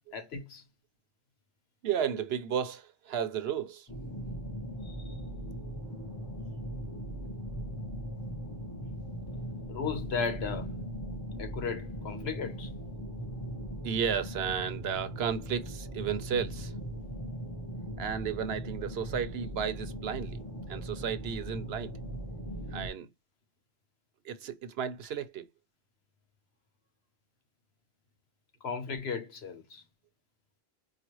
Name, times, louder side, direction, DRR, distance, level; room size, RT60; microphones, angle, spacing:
voice 1, 0.1-0.6 4.8-5.0 9.7-10.7 11.4-12.7 28.6-29.8, left 5 dB, 80° left, 1.2 m, -35 dB
voice 2, 1.8-3.9 13.8-16.7 18.0-21.9 22.7-23.1 24.2-25.5, right 7 dB, 80° right, 0.9 m, -33 dB
sound 1, 3.9-22.9, equal, 25° left, 1.0 m, -39 dB
4.9 x 2.3 x 3.0 m
omnidirectional pair, 1.1 m